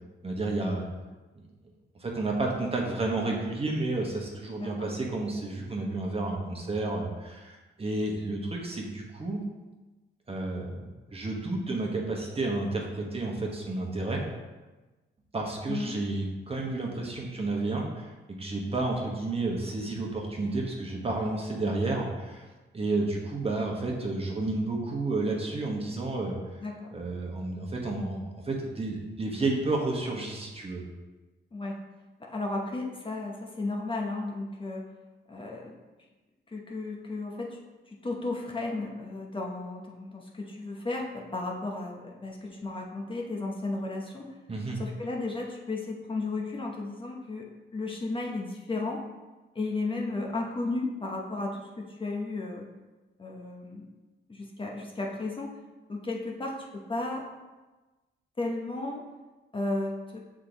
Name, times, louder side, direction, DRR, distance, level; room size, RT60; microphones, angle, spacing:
voice 1, 0.2-0.9 2.0-9.4 10.3-14.2 15.3-22.4 22.7-26.4 26.9-30.8 44.5-44.8, right 2 dB, 30° right, -1 dB, 1.2 m, -31 dB
voice 2, 4.6-4.9 15.7-16.0 26.6-26.9 31.5-31.8 32.2-34.8 35.3-35.7 36.5-37.6 37.9-44.3 44.8-49.0 49.5-52.7 53.2-53.9 54.3-55.5 55.9-57.3 58.4-59.0 59.5-60.2, left 2 dB, 25° left, -1 dB, 0.8 m, -34 dB
6.6 x 3.7 x 3.9 m, 1.2 s
cardioid pair, 100°, 20 cm